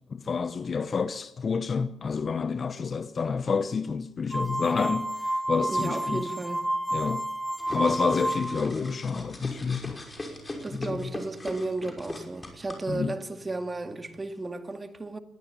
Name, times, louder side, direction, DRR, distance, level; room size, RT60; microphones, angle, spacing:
voice 1, 0.1-6.3 6.9-7.3 7.7-10.0 10.7-11.1 12.9-13.2, left 5 dB, 40° left, 0.9 m, -29 dB
sound 1, 4.3-8.7, right 1 dB, 5° right, 1.8 m, -30 dB
voice 2, 5.7-6.7 10.6-15.2, right 2 dB, 25° right, 2.2 m, -34 dB
sound 2, 7.6-12.7, left 2 dB, 20° left, 5.6 m, -39 dB
sound 3, 7.8-14.1, right 10 dB, 75° right, 6.3 m, -53 dB
21.5 x 14.0 x 9.0 m
cardioid pair, 90°, 0 cm